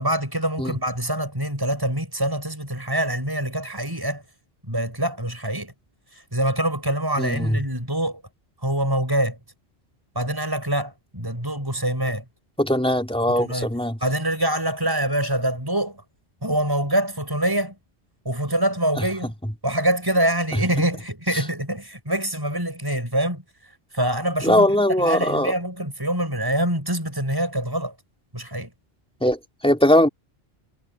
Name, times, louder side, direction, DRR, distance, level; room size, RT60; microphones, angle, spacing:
voice 1, 0.0-4.2 4.7-5.7 6.1-8.2 8.6-9.4 10.2-12.2 13.3-13.7 14.0-16.0 16.4-17.8 18.2-19.3 19.6-24.7 25.0-28.0 28.3-28.7, right 1 dB, 20° right, 7.2 m, -25 dB
voice 2, 7.2-7.6 12.6-14.0 24.4-25.5 29.2-30.1, left 1 dB, 5° left, 3.4 m, -20 dB
omnidirectional pair, 1.1 m